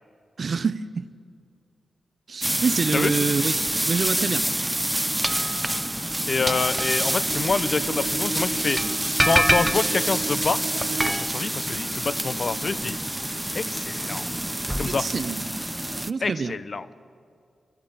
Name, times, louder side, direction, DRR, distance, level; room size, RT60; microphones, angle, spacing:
voice 1, 0.4-1.1 2.3-4.5 14.9-15.5 16.1-16.6, right 5 dB, 55° right, 0.7 m, -26 dB
sound 1, 2.4-16.1, right 1 dB, 10° right, 0.4 m, -26 dB
voice 2, 6.3-8.8 9.2-10.6 11.1-13.0 13.5-14.2 14.8-15.1 16.2-16.9, left 4 dB, 50° left, 0.8 m, -26 dB
Bowed string instrument, 7.2-11.3, right 5 dB, 90° right, 1.2 m, -35 dB
24.5 x 13.5 x 8.8 m
cardioid pair, 75°, 0 cm